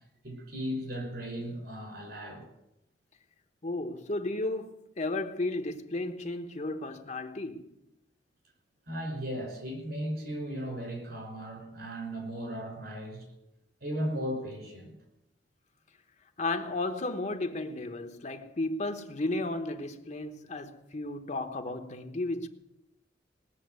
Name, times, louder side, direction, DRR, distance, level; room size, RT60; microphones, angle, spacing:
voice 1, 0.2-2.5 8.9-13.3 13.8-14.9, equal, 65° right, 5.7 m, -36 dB
voice 2, 3.6-7.7 16.4-22.5, left 2 dB, 40° left, 1.1 m, -34 dB
19.0 x 7.2 x 9.5 m
head